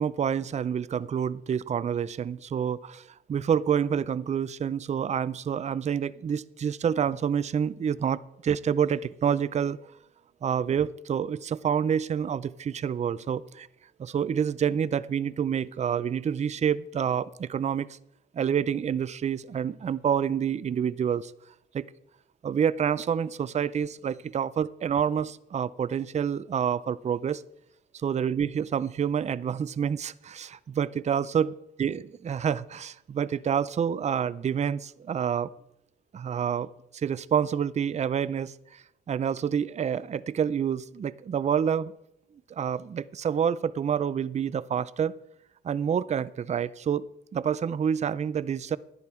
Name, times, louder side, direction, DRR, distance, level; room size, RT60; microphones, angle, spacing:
voice 1, 0.0-9.8 10.4-13.7 14.0-17.9 18.3-21.3 21.7-21.8 22.4-27.4 28.0-31.5 31.8-35.5 36.1-41.9 42.5-45.2 45.6-47.0 47.3-48.8, right 8 dB, 35° right, 18 dB, 0.5 m, -28 dB
11.5 x 11.0 x 4.4 m, 0.79 s
cardioid pair, 90°, 20 cm